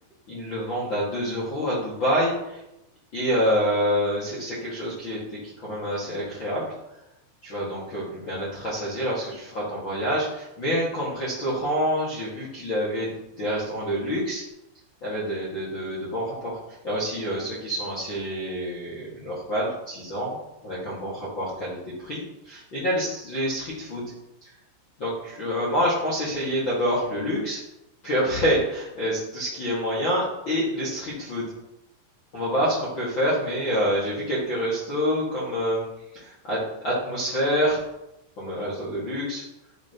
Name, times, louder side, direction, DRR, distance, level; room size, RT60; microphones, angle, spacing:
voice 1, 0.3-2.6 3.1-6.7 7.4-14.4 15.0-16.6 16.8-20.4 20.6-24.1 25.0-27.6 28.0-31.5 32.3-35.8 36.1-37.8 38.4-39.4, equal, 70° left, -7 dB, 1.1 m, -27 dB
11.0 x 7.4 x 3.0 m, 0.89 s
omnidirectional pair, 5.7 m